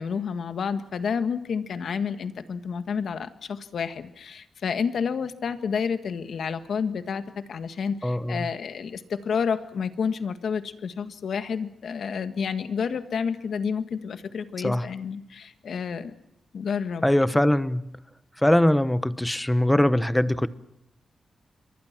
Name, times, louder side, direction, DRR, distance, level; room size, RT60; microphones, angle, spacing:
voice 1, 0.0-16.1 16.5-17.1, left 6 dB, 70° left, 10 dB, 1.8 m, -30 dB
voice 2, 8.0-8.5 14.6-14.9 17.0-17.9 18.4-20.5, left 1 dB, 5° left, 14 dB, 1.0 m, -22 dB
29.0 x 23.5 x 6.0 m, 0.79 s
wide cardioid pair, 125°, 0 cm